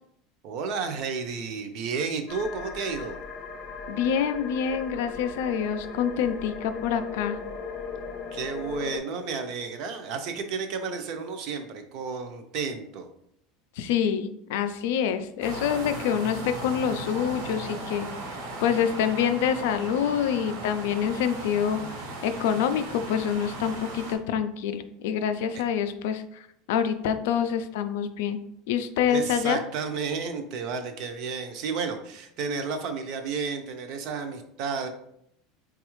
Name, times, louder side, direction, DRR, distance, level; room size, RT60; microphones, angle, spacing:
voice 1, 0.4-3.2 8.3-13.1 25.5-25.6 29.1-34.9, right 5 dB, 45° right, 7 dB, 0.5 m, -32 dB
sound 1, 2.3-9.0, left 5 dB, 35° left, 0.7 m, -38 dB
voice 2, 3.9-7.4 13.8-18.1 18.6-21.8 22.2-28.4 28.7-29.6, left 8 dB, 75° left, 10 dB, 0.3 m, -26 dB
sound 2, 15.4-24.1, right 2 dB, 80° right, 0.9 m, -37 dB
4.0 x 2.3 x 3.0 m, 0.74 s
supercardioid pair, 170°, 0 cm